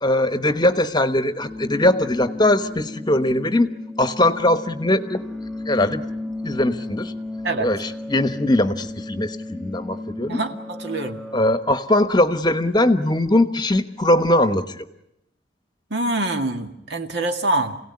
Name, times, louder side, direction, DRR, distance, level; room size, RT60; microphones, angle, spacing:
voice 1, 0.0-3.7 4.0-5.2 5.7-6.0 6.4-7.1 7.6-10.4 11.3-14.9, left 1 dB, 25° left, 10 dB, 1.1 m, -20 dB
sound 1, 1.4-11.4, left 2 dB, ahead, 1.7 m, -34 dB
voice 2, 10.3-11.2 15.9-17.8, right 2 dB, 65° right, 6 dB, 2.0 m, -25 dB
27.5 x 17.5 x 9.7 m, 0.83 s
head